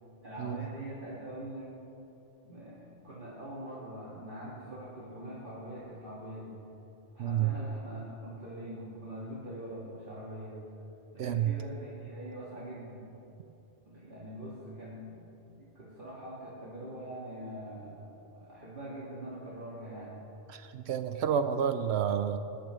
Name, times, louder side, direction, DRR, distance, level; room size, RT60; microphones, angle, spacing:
voice 1, 0.2-1.7 2.4-2.8 3.0-6.6 7.1-10.6 11.1-13.1 13.8-15.3 15.6-18.0 18.3-20.2, right 1 dB, 45° right, -9 dB, 2.1 m, -43 dB
voice 2, 7.2-7.5 11.2-11.5 20.5-22.4, right 9 dB, 70° right, 9 dB, 0.8 m, -29 dB
19.5 x 10.5 x 3.1 m, 3.0 s
omnidirectional pair, 1.2 m